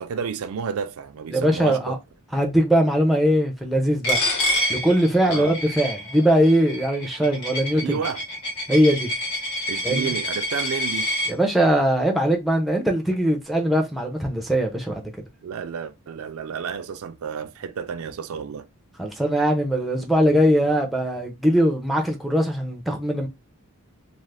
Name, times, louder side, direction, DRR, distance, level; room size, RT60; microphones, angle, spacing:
voice 1, 0.0-2.0 5.3-5.5 7.7-8.2 9.7-11.1 15.4-18.7, right 6 dB, 70° right, 0.4 m, -31 dB
voice 2, 1.3-2.0 2.3-4.2 4.7-8.0 8.7-9.1 9.8-10.1 11.3-15.0 19.0-23.3, equal, ahead, 0.5 m, -21 dB
Coin (dropping), 4.0-11.3, left 1 dB, 85° left, 1.0 m, -27 dB
2.4 x 2.4 x 3.3 m
head